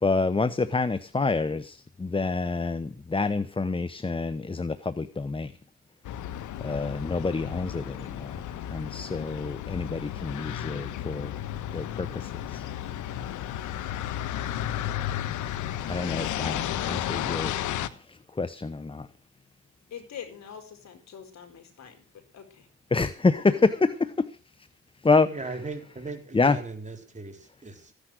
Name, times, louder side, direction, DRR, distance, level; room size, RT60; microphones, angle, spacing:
voice 1, 0.0-5.5 6.6-11.3 11.7-12.7 15.9-19.1 22.9-24.4 25.0-25.4 25.9-26.0 26.3-26.6, left 3 dB, 20° left, 0.9 m, -27 dB
sound 1, 6.0-17.9, left 11 dB, 80° left, 1.2 m, -33 dB
voice 2, 19.9-22.0 22.3-22.7, left 8 dB, 65° left, 4.6 m, -44 dB
voice 3, 25.2-27.9, right 3 dB, 25° right, 4.1 m, -38 dB
15.0 x 10.0 x 6.4 m
cardioid pair, 90°, 30 cm